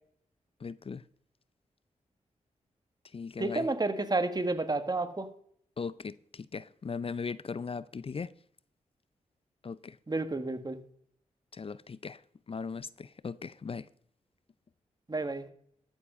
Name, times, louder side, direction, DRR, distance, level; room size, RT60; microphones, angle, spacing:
voice 1, 0.6-1.0 3.0-3.7 5.8-8.3 9.6-10.0 11.5-13.9, left 5 dB, 45° left, 0.5 m, -38 dB
voice 2, 3.4-5.3 10.1-10.8 15.1-15.5, right 2 dB, 30° right, 1.5 m, -30 dB
13.5 x 7.3 x 5.5 m
cardioid pair, 55°, 13 cm